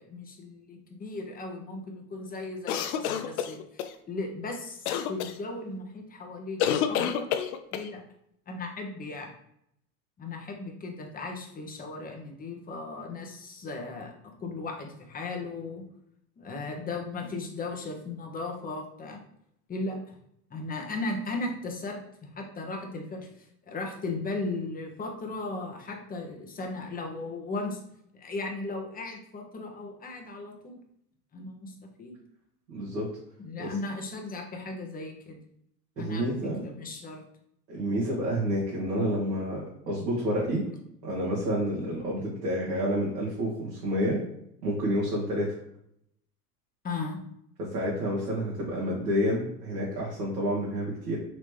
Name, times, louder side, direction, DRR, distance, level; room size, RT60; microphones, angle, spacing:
voice 1, 0.0-3.6 4.1-6.6 6.9-7.3 7.7-8.0 8.5-9.3 10.2-15.8 16.4-19.2 19.7-20.2 20.5-27.8 28.1-30.8 31.3-32.2 33.4-35.4 36.0-36.4 36.6-37.2 46.8-47.2, left 3 dB, 20° left, 2 dB, 0.8 m, -36 dB
sound 1, 2.7-3.9 4.9-5.3 6.6-7.9, left 9 dB, 65° left, 0.6 m, -28 dB
voice 2, 32.7-33.1 33.6-33.7 36.0-36.6 37.7-40.6 41.0-44.2 44.6-45.6 47.6-51.2, equal, 85° right, -7 dB, 1.5 m, -29 dB
4.0 x 3.2 x 3.2 m, 0.74 s
hypercardioid pair, 95°, 47 cm